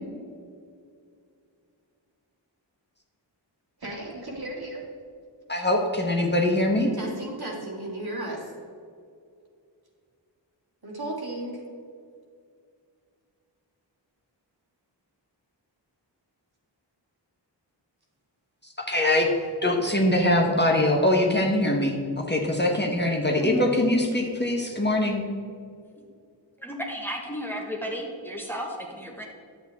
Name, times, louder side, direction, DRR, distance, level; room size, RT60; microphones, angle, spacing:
voice 1, 3.8-4.9 7.0-8.5 10.8-11.6, right 1 dB, 55° right, -3 dB, 2.4 m, -34 dB
voice 2, 5.5-6.9 18.8-19.3 19.6-25.2, left 1 dB, 25° left, 0 dB, 1.1 m, -23 dB
voice 3, 23.4-23.7 26.6-29.3, equal, 5° left, 0 dB, 1.4 m, -33 dB
11.0 x 7.9 x 3.6 m, 2.3 s
wide cardioid pair, 90°, 45 cm